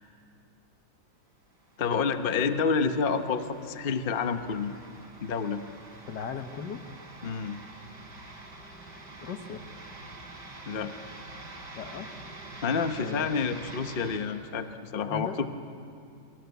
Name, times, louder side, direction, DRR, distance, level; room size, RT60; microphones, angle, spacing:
sound 1, 1.6-14.2, right 2 dB, 80° right, 4.9 m, -46 dB
voice 1, 1.8-4.7 5.2-5.6 7.2-7.6 10.7-10.9 12.6-15.5, left 5 dB, 35° left, 8 dB, 1.0 m, -29 dB
voice 2, 6.1-6.8 9.2-9.6 11.7-12.1 13.0-13.4 15.1-15.4, left 6 dB, 70° left, 8 dB, 1.8 m, -37 dB
29.0 x 24.5 x 8.3 m, 2.5 s
omnidirectional pair, 1.9 m